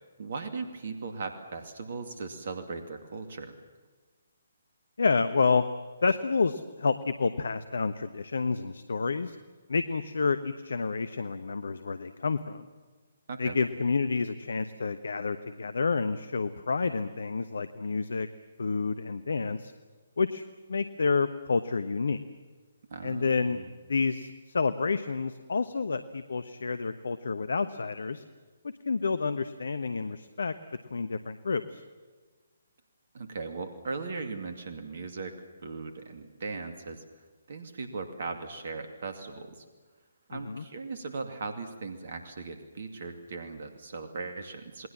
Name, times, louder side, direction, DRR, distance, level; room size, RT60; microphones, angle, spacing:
voice 1, 0.2-3.5 13.3-13.6 22.9-23.7 33.1-39.6 40.3-44.9, right 4 dB, 55° right, 7 dB, 2.5 m, -38 dB
voice 2, 5.0-5.7 6.0-9.4 9.7-12.7 13.4-18.3 18.6-19.7 20.2-20.4 20.7-22.2 23.0-23.6 23.9-28.2 28.6-30.5 30.9-31.8 40.3-40.6, left 4 dB, 65° left, 12 dB, 1.1 m, -29 dB
29.0 x 20.5 x 7.4 m, 1.4 s
figure-of-eight pair, 140°, 0 cm